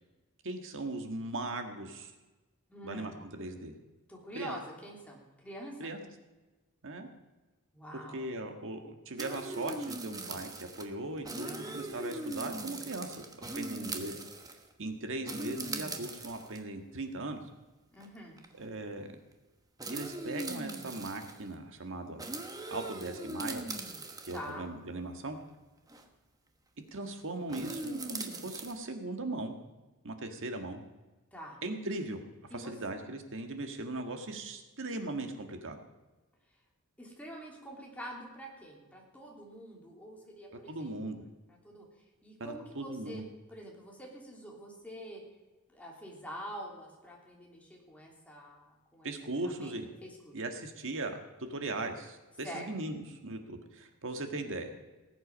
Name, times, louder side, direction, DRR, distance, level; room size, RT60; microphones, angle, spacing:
voice 1, 0.4-2.1 2.8-3.7 4.3-4.5 5.8-6.0 6.8-7.1 7.9-14.2 14.8-17.4 18.6-19.1 19.9-22.2 22.7-23.7 24.2-25.4 26.9-29.6 30.0-30.8 31.6-32.2 32.5-35.8 40.7-41.2 42.4-43.3 49.0-49.9 50.3-51.2 51.5-54.7, right 2 dB, 60° right, 5 dB, 1.7 m, -39 dB
voice 2, 2.7-3.2 4.1-5.9 7.7-8.3 11.4-11.8 17.9-18.4 24.3-24.7 31.3-31.6 32.5-32.7 37.0-40.9 41.5-41.9 42.2-43.2 43.5-45.2 45.7-49.1 49.6-50.4 52.4-52.7, equal, 5° left, -2 dB, 3.2 m, -46 dB
sound 1, 9.2-10.8 11.2-14.7 15.3-16.6 17.4-17.5 18.0-18.1 18.4-18.6 19.8-21.4 22.2-24.5 25.9-26.0 27.5-28.7, right 2 dB, 15° right, 1.2 m, -40 dB
19.0 x 8.3 x 5.3 m, 1.2 s
head